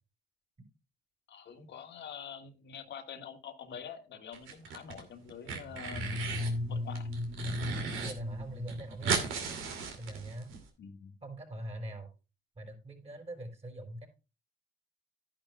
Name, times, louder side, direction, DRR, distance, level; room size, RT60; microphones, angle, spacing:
voice 1, 1.3-6.0 6.7-7.1 10.8-11.1, left 7 dB, 65° left, 4 dB, 1.8 m, -46 dB
sound 1, 4.3-5.0 5.3-6.5 6.9-8.1 8.4-8.5 8.7-10.6, right 6 dB, 85° right, 2.6 m, -36 dB
sound 2, 5.7-9.8, left 2 dB, ahead, 2.0 m, -37 dB
voice 2, 8.0-9.2 10.0-10.5 11.2-12.1 12.6-14.1, right 1 dB, 30° right, 4 dB, 4.4 m, -42 dB
12.0 x 10.5 x 2.3 m, 0.31 s
cardioid pair, 90°, 20 cm